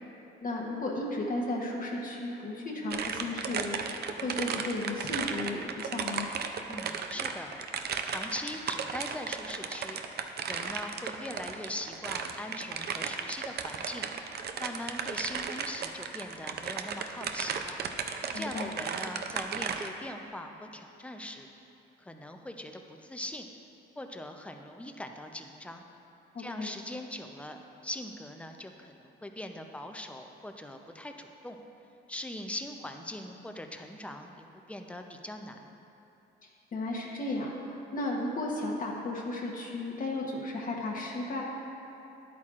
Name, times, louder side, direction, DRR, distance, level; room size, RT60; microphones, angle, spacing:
voice 1, 0.4-6.3 18.3-18.7 26.3-26.7 36.4-41.4, left 2 dB, 45° left, -2 dB, 1.0 m, -34 dB
sound 1, 2.9-19.9, right 6 dB, 55° right, 0.5 m, -35 dB
voice 2, 6.7-7.7 8.0-10.0 10.4-14.1 14.6-17.8 18.3-21.5 22.0-23.5 24.0-25.8 26.4-27.6 27.8-31.6 32.1-35.7, left 1 dB, 5° left, 4 dB, 0.6 m, -41 dB
10.5 x 8.5 x 2.5 m, 2.9 s
cardioid pair, 90°, 20 cm